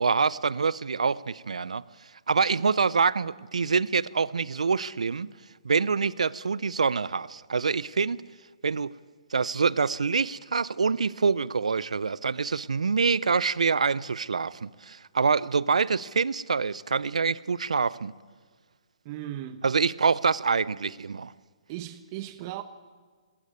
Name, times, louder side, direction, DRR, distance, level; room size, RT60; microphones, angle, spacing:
voice 1, 0.0-1.8 2.3-5.3 5.6-8.2 8.6-8.9 9.3-18.1 19.6-21.3, right 5 dB, 80° right, 0.6 m, -26 dB
voice 2, 19.0-19.6 21.7-22.6, right 13 dB, 35° right, 1.1 m, -37 dB
20.5 x 17.5 x 9.4 m
hypercardioid pair, 135°, 4 cm